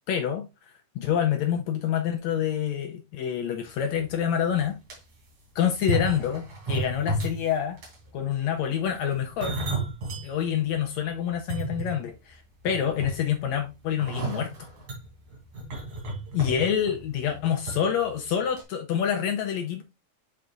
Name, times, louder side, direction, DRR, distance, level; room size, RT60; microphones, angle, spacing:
voice 1, 0.1-4.8 5.5-7.8 8.1-9.6 10.2-14.5 16.3-19.8, left 9 dB, 80° left, 1.6 m, -27 dB
sound 1, 4.0-4.1 4.6-5.0 5.8-7.5 7.8-8.1 8.9-10.3 10.7-10.8 11.3-12.3 12.7-13.4 14.0-17.8 18.1-18.3 18.6-18.7, right 1 dB, 60° right, 4.3 m, -32 dB
11.0 x 4.5 x 2.5 m
omnidirectional pair, 3.9 m